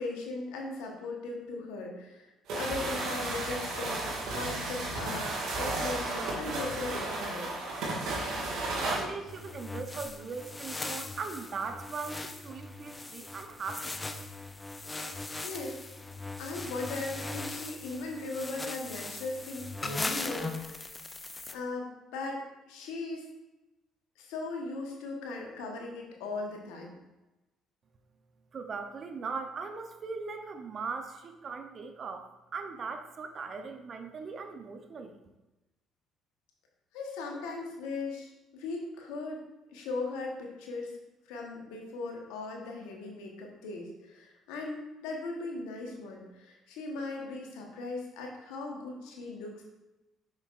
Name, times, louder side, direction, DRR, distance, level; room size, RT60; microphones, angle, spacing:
voice 1, 0.0-7.6 15.4-15.8 16.4-20.9 21.5-23.2 24.2-27.0 36.9-39.4 39.7-41.0 41.3-49.6, left 3 dB, 80° left, 1 dB, 1.2 m, -38 dB
sound 1, 2.5-9.1, right 2 dB, 70° right, 2.0 m, -33 dB
voice 2, 8.8-14.0 28.5-35.2, right 4 dB, 50° right, 6 dB, 0.7 m, -39 dB
sound 2, 9.3-21.5, left 2 dB, 25° left, 0.5 m, -39 dB
6.5 x 6.1 x 2.5 m, 1.0 s
hypercardioid pair, 60°, 0 cm